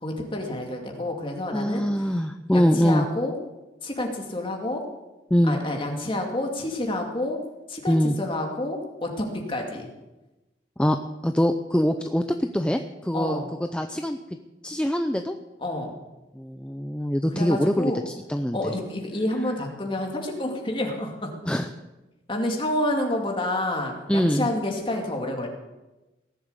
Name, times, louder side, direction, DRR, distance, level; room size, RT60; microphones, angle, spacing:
voice 1, 0.0-1.9 2.5-3.4 3.8-4.8 5.5-7.4 7.7-9.9 13.1-13.5 15.6-15.9 17.3-18.0 18.5-21.3 22.3-25.5, left 1 dB, 30° left, 1 dB, 2.5 m, -29 dB
voice 2, 1.5-3.1 5.3-5.6 7.9-8.1 10.8-11.0 11.2-13.4 13.7-14.2 14.6-15.3 16.4-18.7 21.5-21.7 24.1-24.5, equal, 5° left, 6 dB, 0.5 m, -23 dB
18.5 x 7.2 x 8.2 m, 1.1 s
head